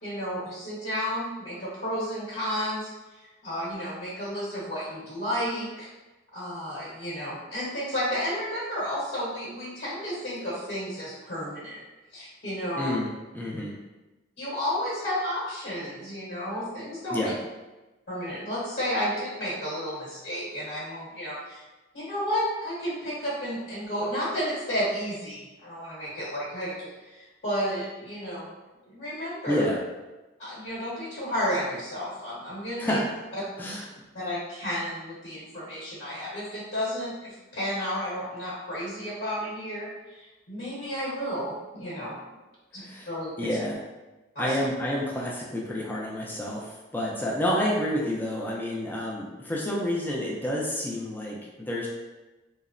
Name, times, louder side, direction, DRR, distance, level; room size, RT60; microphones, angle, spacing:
voice 1, 0.0-2.9 3.4-5.9 6.3-11.8 12.1-12.9 14.4-17.2 18.1-21.6 21.9-28.4 28.8-29.7 30.4-33.0 34.1-42.1 42.7-43.6 44.3-44.5, equal, 65° left, -8 dB, 1.0 m, -32 dB
voice 2, 12.7-13.8 17.1-17.4 29.5-29.8 32.8-33.1 33.6-33.9 42.8-43.1 43.4-43.8 44.4-51.9, left 1 dB, 10° left, -4 dB, 0.3 m, -29 dB
2.8 x 2.0 x 2.5 m, 1.1 s
head